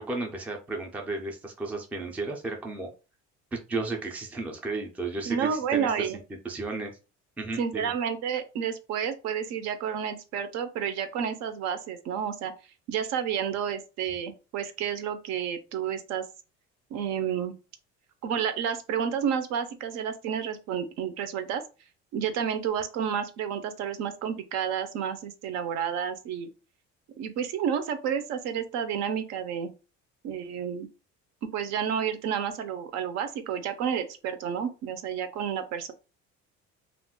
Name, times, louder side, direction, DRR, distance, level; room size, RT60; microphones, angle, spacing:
voice 1, 0.0-2.9 3.7-6.1 6.4-6.9 7.4-7.9, right 3 dB, 5° right, 0.3 m, -33 dB
voice 2, 5.3-6.2 7.6-12.5 12.9-16.2 16.9-17.5 18.2-21.6 22.1-26.5 27.2-29.7 30.2-30.9 31.4-35.9, right 8 dB, 65° right, 0.6 m, -30 dB
2.4 x 2.1 x 3.6 m
cardioid pair, 165°, 29 cm